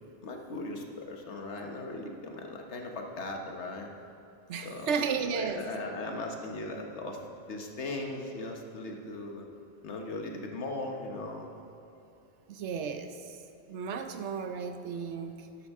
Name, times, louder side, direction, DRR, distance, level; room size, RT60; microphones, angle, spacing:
voice 1, 0.2-3.9 4.6-7.2 7.5-9.5 9.8-11.5, left 2 dB, 85° left, 2 dB, 1.4 m, -38 dB
voice 2, 4.5-5.6 12.5-13.4 13.7-15.7, right 6 dB, 90° right, 8 dB, 1.0 m, -34 dB
13.0 x 10.0 x 3.6 m, 2.7 s
omnidirectional pair, 1.1 m